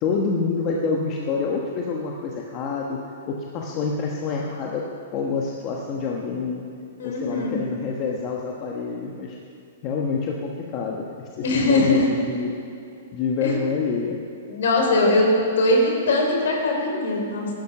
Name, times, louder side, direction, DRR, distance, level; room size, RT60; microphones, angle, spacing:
voice 1, 0.0-3.0 3.3-6.6 7.0-9.4 9.8-11.1 11.3-12.6 13.1-14.2, left 5 dB, 30° left, -1 dB, 1.1 m, -27 dB
voice 2, 7.0-7.6 11.4-12.0 13.4-13.5 14.5-15.3 15.6-17.5, left 2 dB, 70° left, 0 dB, 3.8 m, -21 dB
15.5 x 12.0 x 6.0 m, 2.6 s
hypercardioid pair, 165°, 0 cm